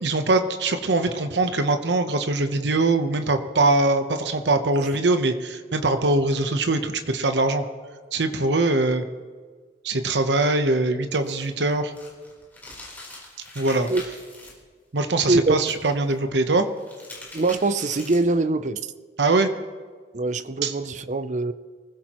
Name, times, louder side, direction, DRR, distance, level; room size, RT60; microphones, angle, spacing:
voice 1, 0.0-7.6 8.1-9.0 9.8-11.9 13.5-13.9 14.9-16.6 19.2-19.5 20.6-20.7, right 2 dB, 80° right, 7 dB, 0.9 m, -22 dB
sound 1, 11.1-14.5 15.6-16.2 16.7-18.4, left 2 dB, 10° left, 3.9 m, -43 dB
voice 2, 17.3-18.8 20.1-21.5, right 2 dB, 40° right, 12 dB, 0.5 m, -23 dB
24.5 x 15.5 x 3.0 m, 1.5 s
head